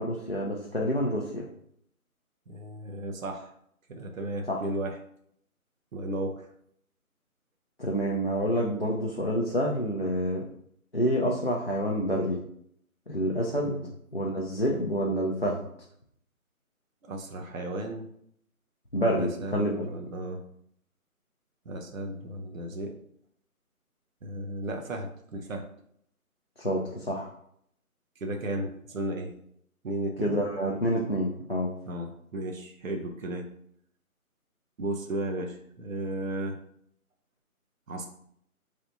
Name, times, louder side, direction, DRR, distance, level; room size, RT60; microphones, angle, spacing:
voice 1, 0.0-1.5 4.5-4.6 7.8-10.4 10.9-12.4 13.1-13.8 14.1-15.6 18.9-19.9 26.6-27.3 30.2-31.7, equal, 45° left, -3 dB, 0.4 m, -28 dB
voice 2, 2.5-3.5 3.9-5.0 5.9-6.5 13.6-13.9 17.1-18.1 19.2-20.4 21.7-23.0 24.2-25.7 28.2-29.3 29.8-30.4 31.9-33.5 34.8-36.6 37.9-38.1, right 1 dB, 65° right, 2 dB, 0.8 m, -34 dB
3.3 x 2.7 x 3.9 m, 0.68 s
figure-of-eight pair, 175°, 44 cm